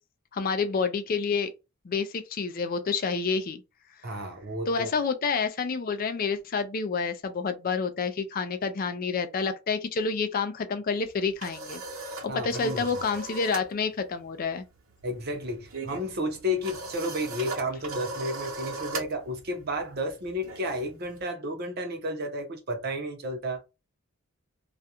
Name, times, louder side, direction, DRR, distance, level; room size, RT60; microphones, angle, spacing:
voice 1, 0.3-1.5 1.8-3.6 4.7-11.8 12.2-14.6, left 5 dB, 40° left, 0.3 m, -28 dB
voice 2, 4.0-4.9 12.3-12.9 15.0-23.6, equal, 45° right, 0.7 m, -32 dB
sound 1, 11.0-13.7 14.0-14.3 14.5-21.2, right 3 dB, 65° right, 0.9 m, -39 dB
2.4 x 2.2 x 2.8 m
head